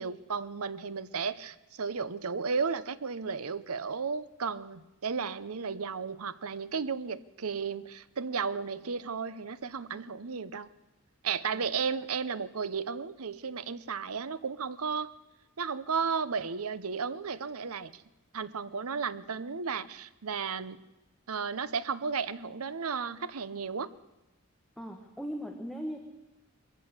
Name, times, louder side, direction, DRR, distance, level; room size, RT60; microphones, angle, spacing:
voice 1, 0.0-10.7 11.2-15.1 15.6-18.0 18.3-20.8 21.3-23.9, right 5 dB, 80° right, 15 dB, 0.8 m, -34 dB
voice 2, 24.8-26.0, equal, ahead, 2 dB, 1.3 m, -38 dB
22.0 x 14.5 x 8.2 m, 1.0 s
head